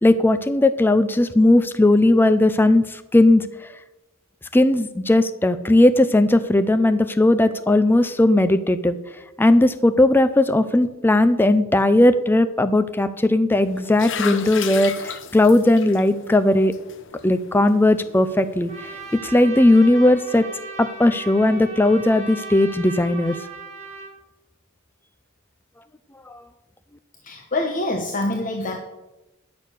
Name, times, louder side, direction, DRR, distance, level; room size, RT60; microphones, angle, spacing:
voice 1, 0.0-3.5 4.5-9.0 9.4-16.8 17.2-18.7 19.2-20.5 20.8-23.4 26.3-26.4, left 1 dB, 10° left, 11 dB, 0.4 m, -17 dB
sound 1, 13.6-19.2, left 7 dB, 65° left, 0.8 m, -35 dB
Trumpet, 18.7-24.1, right 3 dB, 35° right, 1.9 m, -37 dB
voice 2, 27.2-28.8, left 2 dB, 40° left, 2 dB, 1.0 m, -25 dB
10.5 x 6.4 x 6.7 m, 1.0 s
head